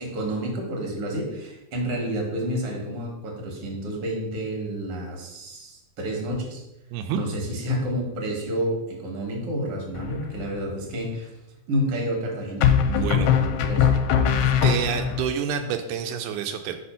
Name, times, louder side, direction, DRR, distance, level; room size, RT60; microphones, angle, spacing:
voice 1, 0.0-6.6 7.1-11.3 11.7-14.3, equal, 55° right, 0 dB, 2.1 m, -30 dB
voice 2, 6.9-7.2 12.9-13.3 14.6-16.8, right 8 dB, 85° right, 5 dB, 2.1 m, -28 dB
sound 1, 10.0-10.5 12.6-15.3, left 8 dB, 80° left, 1.7 m, -21 dB
4.8 x 4.2 x 5.6 m, 0.92 s
omnidirectional pair, 3.5 m